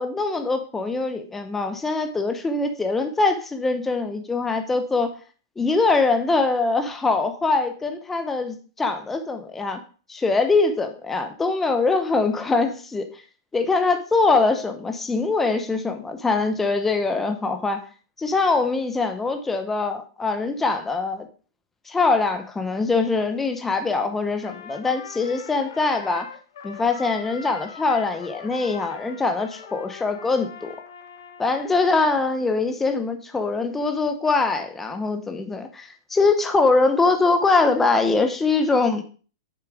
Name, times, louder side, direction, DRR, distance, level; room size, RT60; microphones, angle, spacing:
voice 1, 0.0-5.1 5.6-9.8 10.1-13.2 13.5-17.8 18.2-21.3 21.9-26.3 26.6-30.8 31.4-39.0, left 3 dB, 10° left, 6 dB, 0.9 m, -23 dB
Trumpet, 24.4-32.0, left 6 dB, 70° left, 1.1 m, -41 dB
6.9 x 4.8 x 4.9 m, 0.38 s
hypercardioid pair, 115°, 2 cm